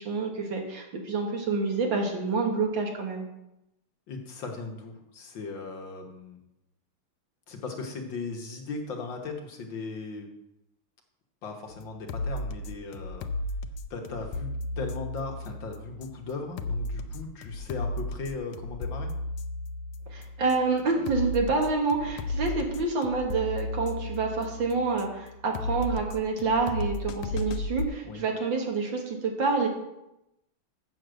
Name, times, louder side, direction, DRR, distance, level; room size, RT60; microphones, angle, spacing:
voice 1, 0.0-3.2 20.1-29.7, right 4 dB, 65° right, 2 dB, 2.3 m, -28 dB
voice 2, 4.1-6.4 7.5-10.3 11.4-13.3 13.9-19.1 28.0-28.2, left 3 dB, 65° left, 2 dB, 1.9 m, -37 dB
sound 1, 11.7-27.9, left 2 dB, 80° left, 1.5 m, -35 dB
7.2 x 6.5 x 7.7 m, 0.89 s
omnidirectional pair, 2.3 m